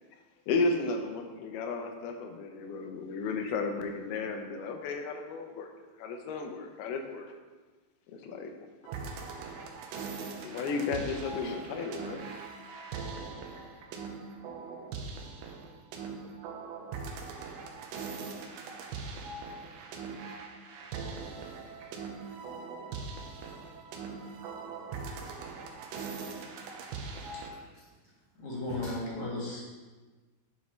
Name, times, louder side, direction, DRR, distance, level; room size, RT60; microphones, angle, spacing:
voice 1, 0.5-5.7 6.0-7.3 8.1-8.5 10.4-12.3, left 3 dB, 85° left, 4 dB, 2.7 m, -33 dB
sound 1, 8.8-27.5, right 4 dB, 85° right, 2.6 m, -41 dB
voice 2, 20.8-22.3 24.5-25.3 27.7-28.2 28.8-28.9, equal, 70° right, -6 dB, 1.6 m, -56 dB
voice 3, 28.4-29.6, left 2 dB, 55° left, -4 dB, 2.8 m, -36 dB
9.5 x 7.1 x 3.1 m, 1.3 s
omnidirectional pair, 4.4 m